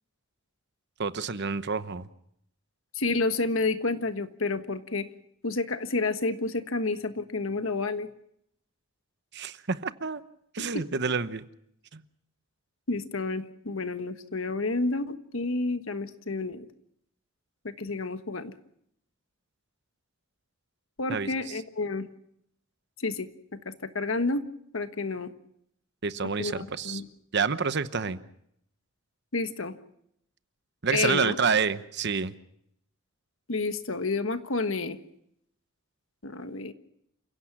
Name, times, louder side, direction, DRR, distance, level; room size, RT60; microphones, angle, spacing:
voice 1, 1.0-2.1 9.3-10.2 10.5-11.5 11.9-12.0 21.1-21.5 26.0-27.0 27.3-28.2 30.8-32.3, right 5 dB, 55° right, 13 dB, 1.0 m, -28 dB
voice 2, 2.9-5.1 5.4-8.1 10.6-10.9 12.9-16.7 17.6-18.5 21.0-22.1 23.0-24.5 24.7-25.3 26.4-27.1 29.3-29.7 30.9-31.4 33.5-35.0 36.2-36.7, left 3 dB, 75° left, 9 dB, 1.4 m, -30 dB
29.0 x 16.5 x 6.1 m, 0.74 s
head